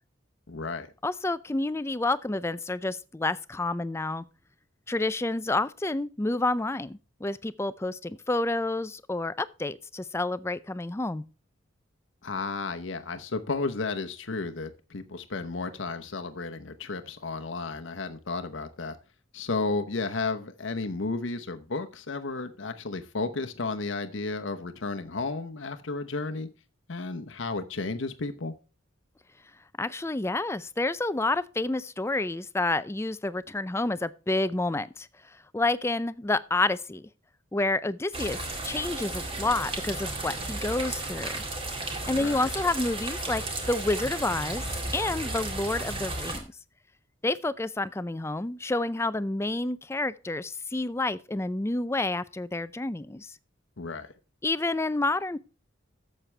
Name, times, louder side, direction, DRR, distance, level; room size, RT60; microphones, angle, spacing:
voice 1, 0.5-0.9 12.2-19.0 19.3-26.5 26.9-28.5 42.1-42.5 53.8-54.1, left 3 dB, 75° left, 0.9 m, -33 dB
voice 2, 1.0-4.2 4.9-11.2 29.8-35.1 35.5-37.1 37.5-41.4 42.1-44.7 44.9-46.5 47.2-53.4 54.4-55.4, left 2 dB, 15° left, 0.4 m, -29 dB
sound 1, 38.1-46.4, right 2 dB, 30° right, 2.0 m, -34 dB
12.0 x 7.5 x 3.3 m
head